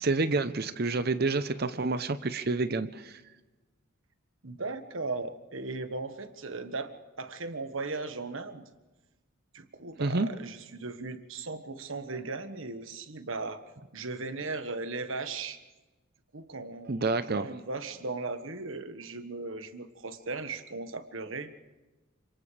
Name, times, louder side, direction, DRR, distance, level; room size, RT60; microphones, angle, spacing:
voice 1, 0.0-3.2 10.0-10.3 16.9-17.5, right 3 dB, 50° right, 11 dB, 0.7 m, -28 dB
voice 2, 4.4-6.9 7.2-8.6 9.5-13.6 13.9-15.6 16.3-21.5, right 3 dB, 70° right, 9 dB, 1.5 m, -37 dB
29.0 x 26.5 x 3.4 m, 1.2 s
head